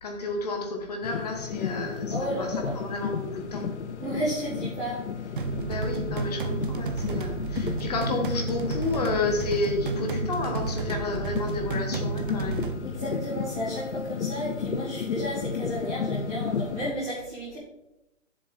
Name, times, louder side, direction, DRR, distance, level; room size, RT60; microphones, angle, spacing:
voice 1, 0.0-3.7 5.6-12.7, left 3 dB, 30° left, 2 dB, 1.4 m, -31 dB
sound 1, 1.0-16.9, left 6 dB, 60° left, 0.7 m, -33 dB
voice 2, 2.1-2.8 4.0-5.0 12.8-17.6, right 1 dB, 5° right, -16 dB, 0.6 m, -32 dB
sound 2, 5.4-12.7, right 5 dB, 45° right, 0.6 m, -32 dB
9.6 x 7.4 x 3.5 m, 0.91 s
hypercardioid pair, 170°, 38 cm